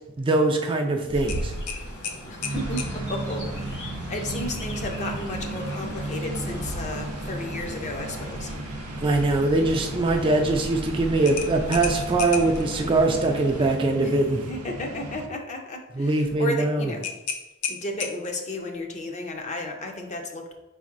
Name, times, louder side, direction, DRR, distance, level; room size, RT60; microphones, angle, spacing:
voice 1, 0.2-1.5 9.0-14.4 16.0-16.9, right 2 dB, 25° right, 3 dB, 0.3 m, -22 dB
Chirp tweet, 1.1-13.7, equal, 55° left, 1.2 m, -37 dB
sound 1, 1.3-2.9 5.6-5.8 6.2-6.3 11.2-12.6 17.0-18.5, left 6 dB, 85° left, 0.5 m, -33 dB
voice 2, 2.3-8.5 13.9-14.1 14.5-17.1 17.7-20.5, left 2 dB, 30° left, 3 dB, 0.5 m, -33 dB
sound 2, 2.4-15.3, right 2 dB, 85° right, 0.5 m, -35 dB
5.2 x 4.1 x 2.5 m, 1.1 s
head